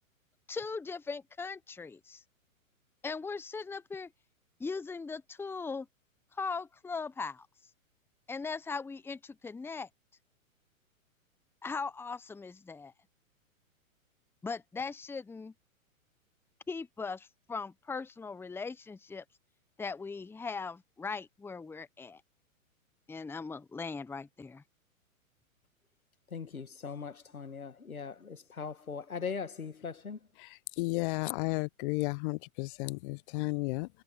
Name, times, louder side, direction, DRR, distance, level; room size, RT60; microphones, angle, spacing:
voice 1, 0.5-2.2 3.0-4.1 4.6-5.9 6.3-7.5 8.3-9.9 11.6-12.9 14.4-15.5 16.7-19.2 19.8-22.2 23.1-24.6, left 4 dB, 5° left, 1.0 m, -39 dB
voice 2, 26.3-30.2, left 6 dB, 90° left, 1.9 m, -40 dB
voice 3, 30.8-33.9, left 26 dB, 40° left, 1.0 m, -33 dB
hypercardioid pair, 115°, 41 cm